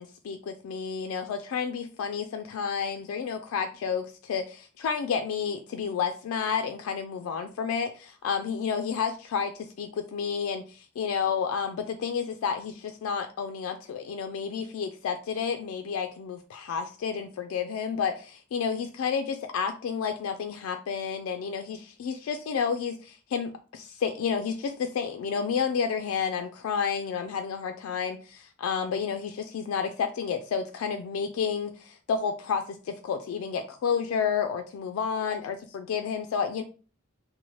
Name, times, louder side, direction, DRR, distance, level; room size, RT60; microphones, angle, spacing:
voice 1, 0.0-36.6, left 6 dB, 85° left, 7 dB, 0.3 m, -30 dB
2.8 x 2.1 x 3.0 m, 0.37 s
head